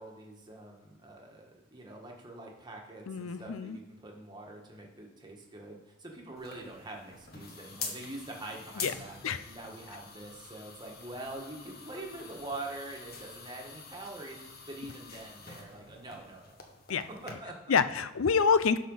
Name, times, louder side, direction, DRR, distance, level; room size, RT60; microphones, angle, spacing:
voice 1, 0.0-16.5 17.2-17.8, right 2 dB, 20° right, 0 dB, 1.5 m, -44 dB
voice 2, 3.1-3.8 8.8-8.9 9.2-9.4 16.9-17.0 17.7-18.8, left 5 dB, 80° left, 14 dB, 0.5 m, -26 dB
sound 1, 6.4-17.3, left 4 dB, 50° left, 1.2 m, -46 dB
12.0 x 4.4 x 5.5 m, 1.1 s
head